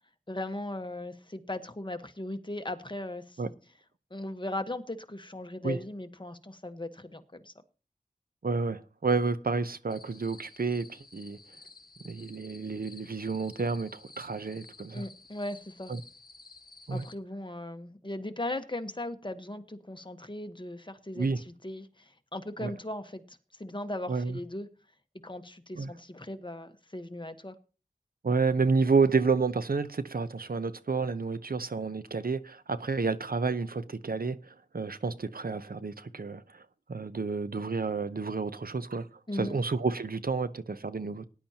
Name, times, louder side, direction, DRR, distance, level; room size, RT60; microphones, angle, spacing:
voice 1, 0.3-3.5 4.1-7.5 14.9-15.9 16.9-24.7 25.2-27.5 39.3-39.6, left 1 dB, 30° left, 1.2 m, -38 dB
voice 2, 8.4-11.4 12.0-15.0 15.9-16.0 16.9-17.1 21.2-21.4 22.6-22.7 24.1-24.4 25.8-25.9 28.2-34.4 34.7-36.6 36.9-41.2, right 4 dB, 70° right, 0.7 m, -30 dB
sound 1, 9.9-17.2, left 3 dB, 65° left, 1.2 m, -53 dB
18.5 x 10.5 x 2.9 m
wide cardioid pair, 55°, 16 cm